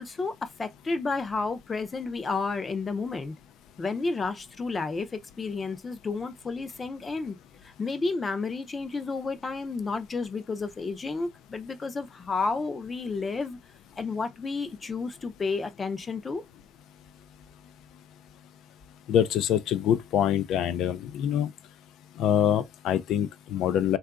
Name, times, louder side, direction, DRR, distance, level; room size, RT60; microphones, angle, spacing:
voice 1, 0.0-3.3 3.8-7.4 7.6-13.6 14.0-16.4, left 4 dB, 25° left, 0.5 m, -31 dB
voice 2, 19.1-21.5 22.2-24.0, left 10 dB, 85° left, 0.4 m, -25 dB
3.7 x 2.3 x 2.3 m
cardioid pair, 160°, 0 cm